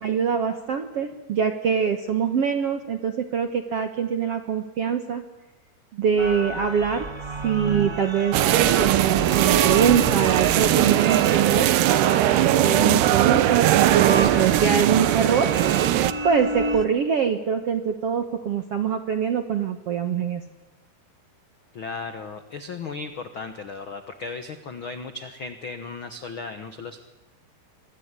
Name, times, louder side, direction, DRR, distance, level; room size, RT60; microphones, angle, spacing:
voice 1, 0.0-5.2 5.9-7.1 7.4-8.4 8.8-15.5 16.2-20.4, right 7 dB, 65° right, 8 dB, 1.5 m, -24 dB
sound 1, 6.2-16.8, right 2 dB, 40° right, 0.3 m, -31 dB
sound 2, 8.3-16.1, right 13 dB, 85° right, 3.2 m, -20 dB
voice 2, 14.1-14.6 21.7-27.0, left 4 dB, 75° left, 9 dB, 1.1 m, -36 dB
26.0 x 21.5 x 9.8 m, 1.0 s
omnidirectional pair, 4.6 m